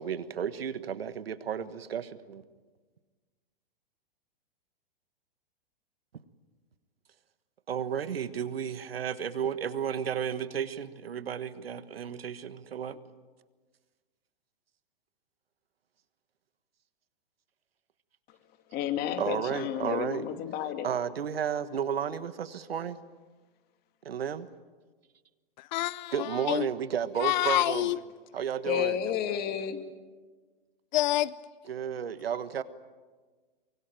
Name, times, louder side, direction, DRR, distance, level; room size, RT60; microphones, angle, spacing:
voice 1, 0.0-2.4 7.7-13.0 19.2-20.2 20.8-23.0 24.0-24.5 26.1-27.9 28.3-29.0 31.7-32.6, right 8 dB, 85° right, 1.5 m, -33 dB
voice 2, 18.7-20.9 28.7-29.8, left 10 dB, 35° left, 2.4 m, -31 dB
voice 3, 25.6-26.7 27.2-28.0 30.9-31.3, left 15 dB, 50° left, 0.8 m, -27 dB
24.0 x 24.0 x 9.1 m
hypercardioid pair, 125°, 29 cm